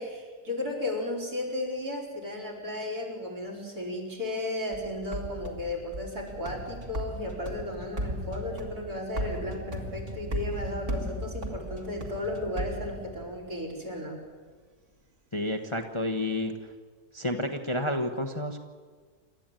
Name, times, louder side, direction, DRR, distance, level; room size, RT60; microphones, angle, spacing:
voice 1, 0.0-14.2, left 1 dB, 65° right, 1 dB, 5.6 m, -34 dB
sound 1, 4.7-13.5, equal, 45° right, 2.6 m, -36 dB
voice 2, 15.3-16.5 17.1-18.6, left 1 dB, 20° left, 4 dB, 1.2 m, -30 dB
28.5 x 13.0 x 9.1 m, 1.5 s
omnidirectional pair, 1.7 m